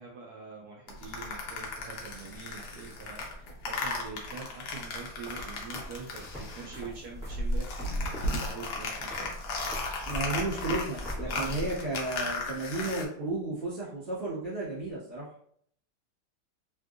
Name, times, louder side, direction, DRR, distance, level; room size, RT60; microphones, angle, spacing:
voice 1, 0.0-9.4 10.2-10.5 11.2-11.5, right 5 dB, 70° right, -1 dB, 1.0 m, -44 dB
sound 1, 0.9-6.9 7.2-13.1, left 2 dB, 65° left, 1.2 m, -35 dB
sound 2, 4.8-12.1, equal, ahead, 0.9 m, -42 dB
voice 2, 10.0-15.3, right 2 dB, 45° right, -12 dB, 1.7 m, -33 dB
3.5 x 2.6 x 2.4 m, 0.63 s
omnidirectional pair, 2.0 m